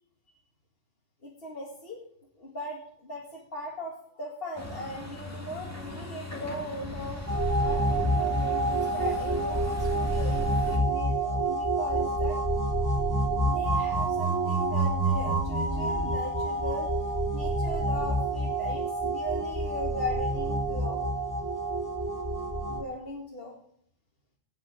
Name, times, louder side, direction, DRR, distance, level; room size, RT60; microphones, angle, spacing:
voice 1, 1.2-2.0 2.4-2.8 3.0-3.2 3.5-7.2 7.6-12.4 13.4-16.9 17.3-21.0 22.7-23.5, left 1 dB, 50° left, -4 dB, 2.4 m, -38 dB
Truck, 4.6-10.8, left 2 dB, 10° left, 2.1 m, -39 dB
sound 1, 7.3-22.8, right 2 dB, 15° right, 1.1 m, -28 dB
16.5 x 5.7 x 8.9 m, 0.69 s
omnidirectional pair, 1.3 m